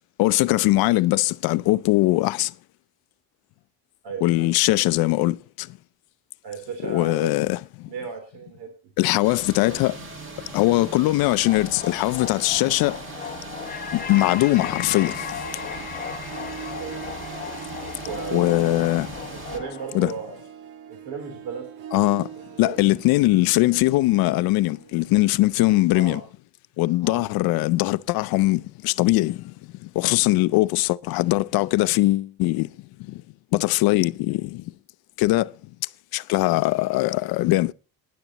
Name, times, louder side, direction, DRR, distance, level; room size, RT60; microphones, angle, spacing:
voice 1, 0.2-2.5 4.2-5.7 6.8-7.6 9.0-10.0 10.5-13.0 13.9-15.2 18.3-19.1 19.9-20.1 21.9-22.3 22.6-26.2 26.8-29.4 30.0-32.7 33.5-34.6 35.2-35.5 36.1-37.7, left 19 dB, 60° left, 0.5 m, -21 dB
voice 2, 4.0-4.5 6.4-7.3 7.8-8.7 16.7-17.0 18.0-19.0 19.3-20.4 20.9-21.7 22.0-22.2 22.6-22.7 25.9-26.2 27.0-27.2, right 5 dB, 70° right, 3.4 m, -35 dB
sound 1, 9.2-19.6, right 3 dB, 30° right, 1.8 m, -39 dB
sound 2, 11.4-19.9, left 7 dB, 20° left, 0.7 m, -36 dB
Harp, 14.6-25.9, right 9 dB, 90° right, 1.5 m, -42 dB
19.5 x 10.5 x 2.9 m
cardioid pair, 180°, 42 cm